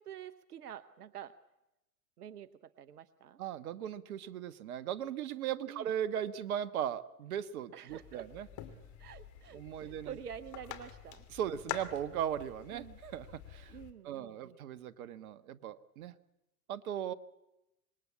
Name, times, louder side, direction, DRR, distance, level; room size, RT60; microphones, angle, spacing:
voice 1, 0.0-1.3 2.2-3.4 5.7-5.9 7.7-8.3 9.0-11.2 12.7-13.0 13.7-14.6, right 9 dB, 85° right, 13 dB, 1.0 m, -48 dB
voice 2, 3.4-8.5 9.5-10.1 11.3-13.8 14.0-16.1 16.7-17.1, right 10 dB, 70° right, 14 dB, 1.4 m, -38 dB
sound 1, 7.9-13.9, left 11 dB, 40° left, 2.8 m, -47 dB
26.5 x 21.0 x 8.5 m, 0.94 s
hypercardioid pair, 105°, 45 cm